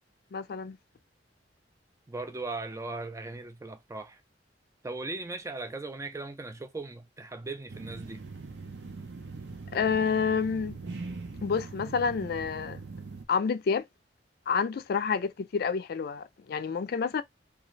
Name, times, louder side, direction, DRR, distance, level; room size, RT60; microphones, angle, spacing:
voice 1, 0.3-0.8 9.7-10.8 11.4-12.8 13.3-13.8 14.5-17.2, left 6 dB, 60° left, 0.4 m, -29 dB
voice 2, 2.1-4.2 4.8-8.2, right 3 dB, 15° right, 0.4 m, -38 dB
sound 1, 7.7-13.2, right 3 dB, 70° right, 0.6 m, -41 dB
2.6 x 2.4 x 3.0 m
head